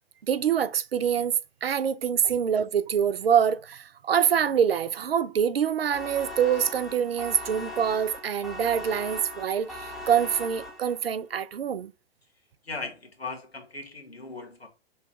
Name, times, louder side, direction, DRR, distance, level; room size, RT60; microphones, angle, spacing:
voice 1, 0.3-1.3 1.6-11.9, right 8 dB, 75° right, 0.4 m, -25 dB
sound 1, 5.9-11.2, left 1 dB, ahead, 0.5 m, -39 dB
voice 2, 12.7-14.7, left 3 dB, 90° left, 1.0 m, -38 dB
5.6 x 2.2 x 3.2 m
figure-of-eight pair, 110°, 30 cm